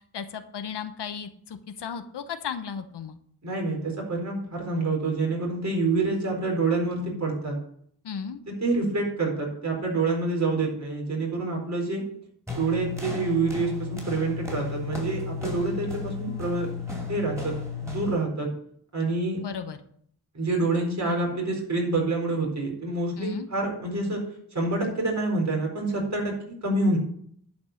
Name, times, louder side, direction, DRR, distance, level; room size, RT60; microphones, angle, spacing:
voice 1, 0.1-3.2 8.0-8.4 19.4-19.8 23.2-23.5, left 7 dB, 90° left, 8 dB, 1.0 m, -35 dB
voice 2, 3.4-7.6 8.5-12.0 12.6-16.7 17.1-17.5 17.8-18.5 18.9-19.4 20.3-24.2 24.5-27.0, right 3 dB, 45° right, 0 dB, 4.3 m, -27 dB
sound 1, 12.5-18.3, left 5 dB, 5° right, 4.2 m, -34 dB
11.0 x 5.3 x 6.5 m, 0.63 s
cardioid pair, 75°, 40 cm